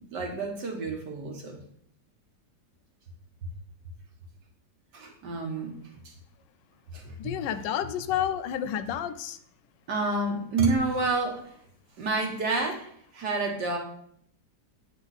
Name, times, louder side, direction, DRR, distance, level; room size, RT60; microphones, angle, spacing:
voice 1, 0.0-1.6 4.9-5.8 6.1-6.2 6.9-7.3 9.9-11.5 12.0-13.8, right 3 dB, 70° right, 2 dB, 1.8 m, -29 dB
voice 2, 7.2-9.4, left 10 dB, 80° left, 11 dB, 1.2 m, -30 dB
8.7 x 4.5 x 4.1 m, 0.65 s
omnidirectional pair, 2.0 m